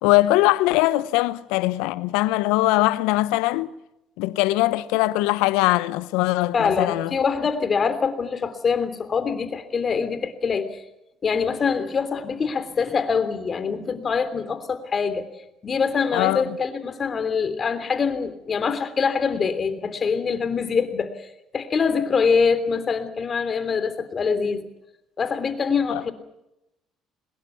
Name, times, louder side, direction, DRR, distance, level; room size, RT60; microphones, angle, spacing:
voice 1, 0.0-3.7 4.2-7.2 16.1-16.6 25.9-26.0, left 18 dB, 75° left, 0.8 m, -21 dB
voice 2, 6.5-10.8 11.2-15.2 15.6-21.1 21.5-24.6 25.2-26.1, left 5 dB, 40° left, 3.2 m, -24 dB
23.0 x 21.0 x 7.1 m
hypercardioid pair, 55°, 0 cm